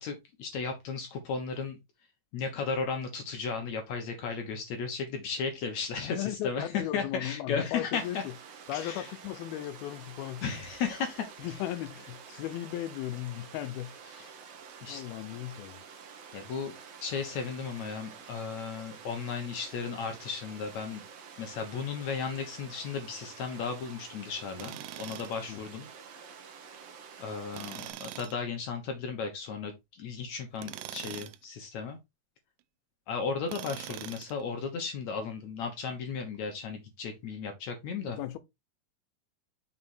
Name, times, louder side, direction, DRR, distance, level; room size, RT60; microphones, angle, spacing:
voice 1, 0.0-1.8 2.3-8.2 8.7-9.1 10.4-11.3 14.2-14.3 14.8-15.0 16.3-16.7 17.0-21.0 21.4-25.9 27.2-29.7 30.0-32.0 33.1-38.2, left 5 dB, 70° left, 1.8 m, -35 dB
voice 2, 6.0-8.3 8.7-10.4 11.4-13.9 14.2-14.3 14.9-15.8 25.5-25.6 38.1-38.4, left 13 dB, 85° left, 2.6 m, -36 dB
Water, 8.0-27.9, right 6 dB, 65° right, 1.7 m, -49 dB
Tools, 24.6-25.4 27.5-28.4 30.6-31.4 33.5-34.4, right 14 dB, 80° right, 2.0 m, -42 dB
6.3 x 4.3 x 4.2 m
omnidirectional pair, 4.3 m